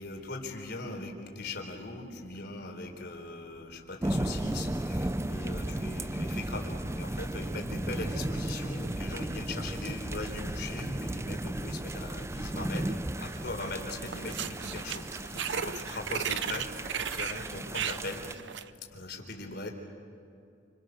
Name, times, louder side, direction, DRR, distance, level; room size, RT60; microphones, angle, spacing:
voice 1, 0.0-18.3 18.9-19.7, left 2 dB, 60° left, 2 dB, 4.2 m, -40 dB
sound 1, 4.0-18.3, right 1 dB, 15° right, 0.5 m, -35 dB
sound 2, 13.3-13.8 14.1-18.7, right 8 dB, 70° right, 0.8 m, -35 dB
29.5 x 28.0 x 6.6 m, 2.6 s
head